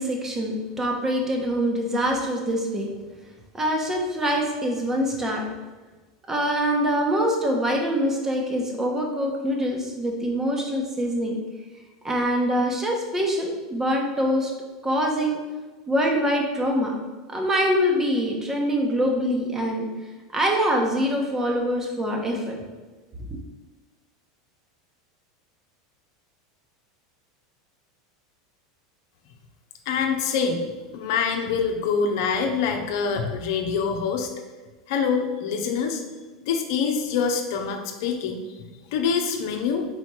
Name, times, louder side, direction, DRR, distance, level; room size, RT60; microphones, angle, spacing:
voice 1, 0.0-2.9 3.5-5.5 6.3-11.4 12.0-14.5 14.8-15.4 15.9-16.9 17.3-19.9 20.3-22.6, equal, 20° right, 1 dB, 1.3 m, -24 dB
voice 2, 29.9-30.7 30.9-34.3 34.9-36.0 36.5-39.9, left 6 dB, 65° left, 4 dB, 0.8 m, -25 dB
4.7 x 4.2 x 4.8 m, 1.3 s
hypercardioid pair, 95°, 2 cm